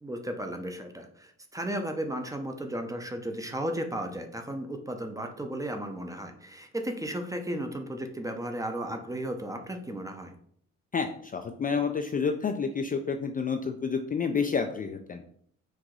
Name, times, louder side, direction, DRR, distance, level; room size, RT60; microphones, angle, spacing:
voice 1, 0.0-10.3, right 1 dB, 10° right, 5 dB, 0.6 m, -34 dB
voice 2, 10.9-15.2, left 5 dB, 30° left, 5 dB, 0.4 m, -29 dB
4.7 x 2.6 x 3.8 m, 0.64 s
cardioid pair, 90°, 30 cm